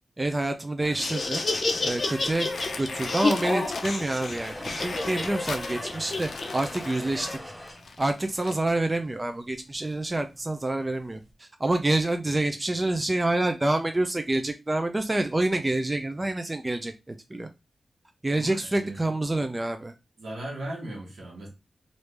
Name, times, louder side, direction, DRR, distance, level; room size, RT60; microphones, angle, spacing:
voice 1, 0.2-1.4 1.8-2.5 2.8-7.5 8.0-17.5 18.2-19.9, right 2 dB, 25° right, 0.5 m, -27 dB
Laughter, 0.8-7.4, left 2 dB, 55° left, 0.7 m, -30 dB
Crumpling crinkling, 2.3-8.7, left 5 dB, 85° left, 0.4 m, -42 dB
sound 1, 4.3-11.3, equal, 5° left, 0.8 m, -44 dB
voice 2, 18.4-19.0 20.2-21.5, right 1 dB, 85° right, 1.5 m, -37 dB
3.2 x 2.6 x 3.3 m
wide cardioid pair, 75°, 0 cm